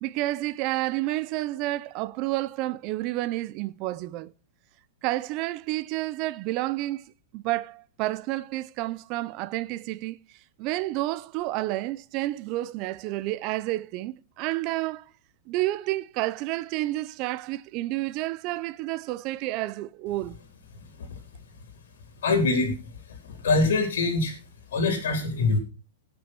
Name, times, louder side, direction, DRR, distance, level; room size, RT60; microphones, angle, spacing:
voice 1, 0.0-4.3 5.0-7.0 7.3-10.2 10.6-15.1 15.5-20.4, right 17 dB, 30° right, 0.5 m, -30 dB
voice 2, 22.2-22.7 23.1-24.4 24.7-25.6, left 3 dB, 75° left, 3.4 m, -24 dB
17.5 x 6.2 x 4.4 m
supercardioid pair, 175°, 0 cm